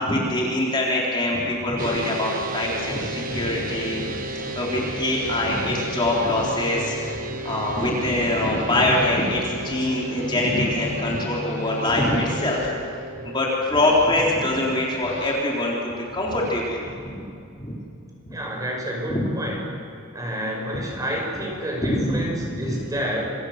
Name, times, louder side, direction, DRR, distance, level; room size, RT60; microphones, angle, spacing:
voice 1, 0.0-7.0 7.4-12.8 13.2-17.2 17.6-17.8 18.3-18.4 19.1-19.3 21.8-22.8, left 1 dB, 20° left, -3 dB, 3.5 m, -24 dB
sound 1, 1.8-13.9, right 1 dB, 40° right, 1.3 m, -34 dB
sound 2, 2.6-12.7 13.7-14.1 15.0-15.4 16.1-16.5, left 1 dB, 55° left, 3.4 m, -37 dB
voice 2, 18.3-19.6 20.1-23.3, equal, 15° right, 0 dB, 5.4 m, -29 dB
27.5 x 25.0 x 6.5 m, 2.5 s
head